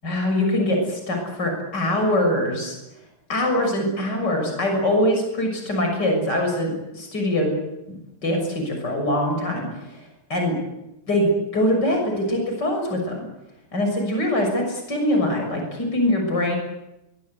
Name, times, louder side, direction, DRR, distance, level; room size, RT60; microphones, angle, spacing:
voice 1, 0.0-2.8 3.3-7.6 7.9-10.0 10.3-10.6 11.1-13.2 13.7-16.6, left 1 dB, 50° left, 2 dB, 7.3 m, -23 dB
24.0 x 23.0 x 8.2 m, 0.91 s
omnidirectional pair, 2.3 m